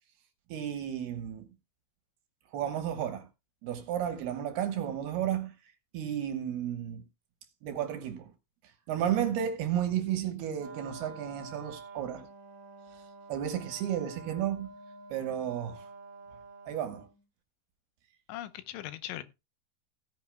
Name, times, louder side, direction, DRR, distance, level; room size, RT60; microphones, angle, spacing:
voice 1, 0.5-1.5 2.5-3.3 3.6-5.5 5.9-7.0 7.6-8.3 8.9-12.3 12.9-13.0 13.3-14.7 15.1-15.9 16.7-17.1, right 10 dB, 70° right, 2.8 m, -32 dB
Wind instrument woodwind instrument, 10.6-17.2, right 3 dB, 45° right, 2.4 m, -48 dB
voice 2, 18.3-19.2, left 14 dB, 85° left, 3.2 m, -39 dB
16.5 x 9.8 x 2.2 m
omnidirectional pair, 5.4 m